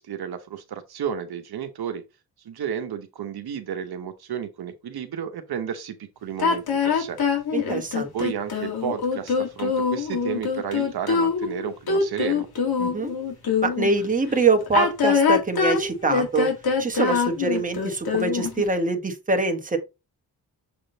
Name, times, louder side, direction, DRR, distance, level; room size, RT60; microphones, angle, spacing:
voice 1, 0.0-2.0 2.4-6.0 6.2-7.2 8.1-12.5, right 8 dB, 70° right, 0.9 m, -32 dB
sound 1, 6.4-13.9 14.6-18.6, left 5 dB, 65° left, 2.0 m, -24 dB
voice 2, 7.5-8.1 12.8-13.1 13.6-16.5 16.8-19.8, right 3 dB, 20° right, 1.2 m, -24 dB
6.8 x 3.7 x 3.9 m
wide cardioid pair, 145°, 39 cm